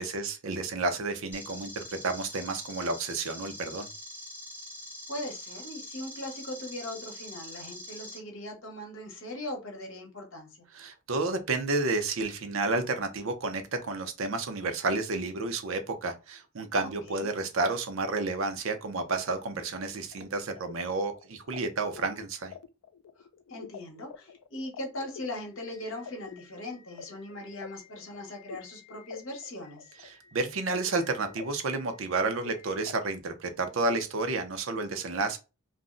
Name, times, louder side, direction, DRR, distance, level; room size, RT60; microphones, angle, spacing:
voice 1, 0.0-3.9 10.7-22.5 30.0-35.4, right 3 dB, 65° right, 0.5 m, -31 dB
sound 1, 1.3-8.2, left 1 dB, 10° left, 0.8 m, -44 dB
voice 2, 5.1-10.5 16.8-17.3 23.5-29.9, left 1 dB, 60° left, 1.0 m, -39 dB
sound 2, 20.1-32.9, left 6 dB, 90° left, 0.3 m, -48 dB
2.4 x 2.0 x 3.7 m
head